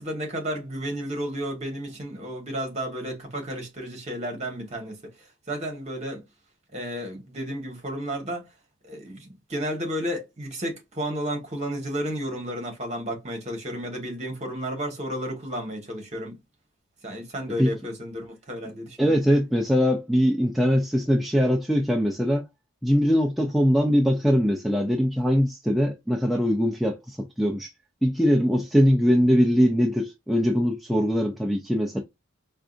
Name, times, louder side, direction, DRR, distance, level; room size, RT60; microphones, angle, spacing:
voice 1, 0.0-5.0 5.5-6.2 6.7-8.5 8.8-16.4 17.0-19.1, equal, 30° right, 1.4 m, -32 dB
voice 2, 19.0-22.5 22.8-27.7 28.0-32.0, equal, ahead, 0.4 m, -22 dB
4.6 x 2.4 x 2.4 m
head